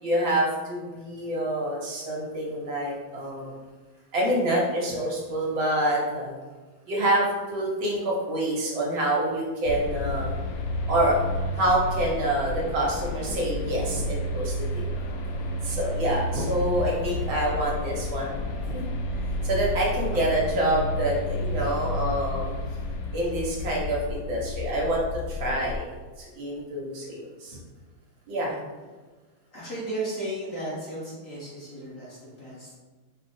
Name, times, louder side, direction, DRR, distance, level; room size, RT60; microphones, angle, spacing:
voice 1, 0.0-3.6 4.1-6.3 6.9-10.3 10.9-11.2 11.5-14.9 15.6-18.8 19.4-22.5 23.1-25.8 26.2-27.6 28.3-28.5, right 1 dB, 70° right, -3 dB, 1.7 m, -27 dB
sound 1, 9.7-25.8, left 1 dB, 75° left, 0.9 m, -31 dB
voice 2, 14.9-15.6 20.1-20.2 28.5-28.6 29.5-32.7, right 1 dB, 40° left, -9 dB, 1.7 m, -35 dB
4.8 x 2.4 x 4.2 m, 1.3 s
omnidirectional pair, 2.3 m